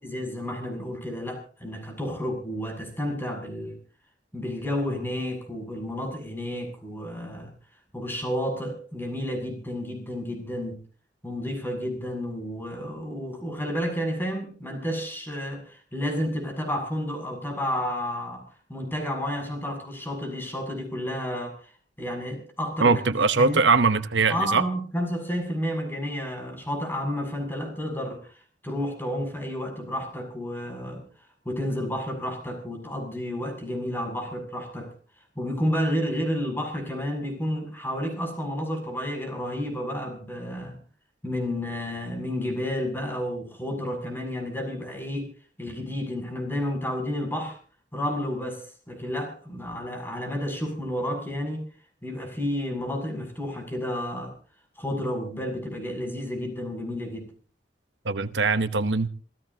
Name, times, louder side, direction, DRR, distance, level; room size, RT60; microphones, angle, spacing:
voice 1, 0.0-3.8 4.3-7.5 7.9-10.8 11.2-21.7 22.0-23.0 23.3-23.6 24.3-34.9 35.4-40.8 41.2-45.3 45.6-47.6 47.9-51.7 52.0-54.4 54.8-57.3, equal, 10° left, 7.3 m, -31 dB
voice 2, 22.8-24.6 58.0-59.1, right 4 dB, 80° right, 1.0 m, -21 dB
27.5 x 17.0 x 2.9 m
head